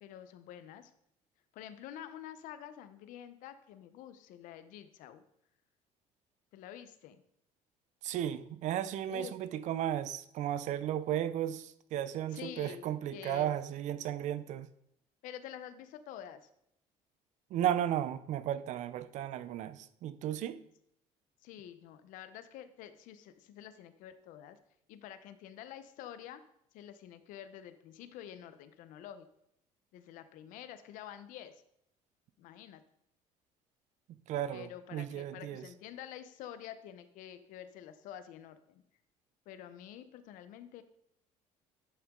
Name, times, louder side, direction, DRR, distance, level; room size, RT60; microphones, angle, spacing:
voice 1, 0.0-0.9 1.5-5.2 6.5-7.2 9.1-9.3 12.3-13.5 15.2-16.5 21.4-24.6 24.9-26.4 26.7-29.3 29.9-31.6 32.4-32.8 34.5-38.8 39.5-40.8, left 10 dB, 80° left, 0.8 m, -48 dB
voice 2, 8.0-14.7 17.5-20.6 34.3-35.6, right 11 dB, 60° right, 0.6 m, -34 dB
11.0 x 6.0 x 3.7 m
cardioid pair, 130°, 13 cm